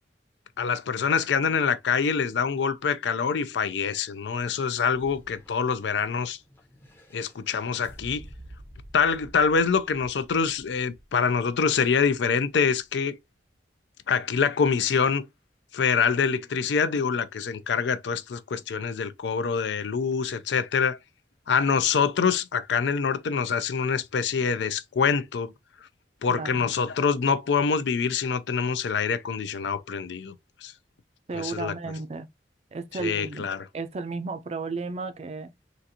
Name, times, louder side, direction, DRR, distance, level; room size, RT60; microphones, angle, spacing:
voice 1, 0.6-6.4 7.1-8.2 8.9-13.2 14.1-15.3 15.7-21.0 21.5-25.5 26.2-30.4 30.6-30.7 31.3-31.7 32.9-33.7, left 6 dB, 75° left, 0.4 m, -25 dB
sound 1, 4.9-12.9, equal, 15° left, 0.6 m, -50 dB
voice 2, 26.3-26.7 31.3-32.3 32.7-33.5 33.7-35.5, right 4 dB, 35° right, 0.4 m, -33 dB
3.8 x 2.5 x 2.7 m
head